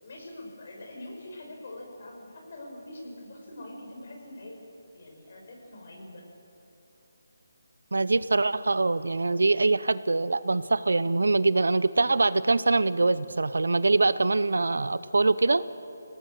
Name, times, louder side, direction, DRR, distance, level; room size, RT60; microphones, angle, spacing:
voice 1, 0.0-4.6 4.9-6.3, left 1 dB, 50° left, 1 dB, 6.1 m, -44 dB
voice 2, 7.9-15.6, right 3 dB, 80° right, 16 dB, 0.7 m, -23 dB
27.0 x 18.0 x 6.6 m, 2.8 s
figure-of-eight pair, 165°, 0 cm